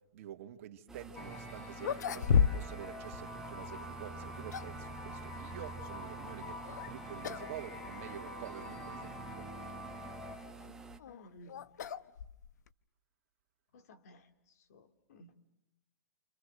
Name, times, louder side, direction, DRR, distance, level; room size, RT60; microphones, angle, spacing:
voice 1, 0.1-9.5, right 11 dB, 50° right, 5 dB, 2.2 m, -48 dB
sound 1, 0.9-11.0, right 4 dB, 5° right, 1.2 m, -50 dB
sound 2, 1.1-10.4, left 1 dB, 15° left, 7.1 m, -46 dB
sound 3, 1.3-1.4 1.8-2.9 3.1-3.3 4.1-4.8 6.6-6.9 7.2-7.5 7.8-7.9 8.7-8.8 10.6-12.7, left 7 dB, 85° left, 1.0 m, -32 dB
voice 2, 11.1-11.7 13.7-14.3 14.7-15.3, left 1 dB, 65° left, 10 dB, 2.7 m, -56 dB
29.5 x 27.5 x 6.7 m, 0.87 s
hypercardioid pair, 160°, 9 cm